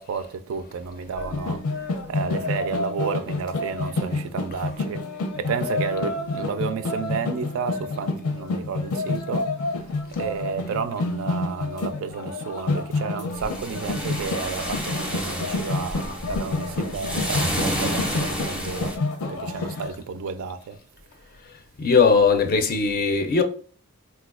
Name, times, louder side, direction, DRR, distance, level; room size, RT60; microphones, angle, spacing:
voice 1, 0.0-5.0 5.4-18.9 19.3-20.8, right 5 dB, 65° right, 0.3 m, -32 dB
sound 1, 1.2-19.9, left 3 dB, 90° left, 0.6 m, -29 dB
sound 2, 13.3-19.0, equal, 5° right, 0.5 m, -30 dB
voice 2, 21.8-23.4, left 5 dB, 45° left, 0.4 m, -20 dB
3.9 x 2.2 x 2.4 m
head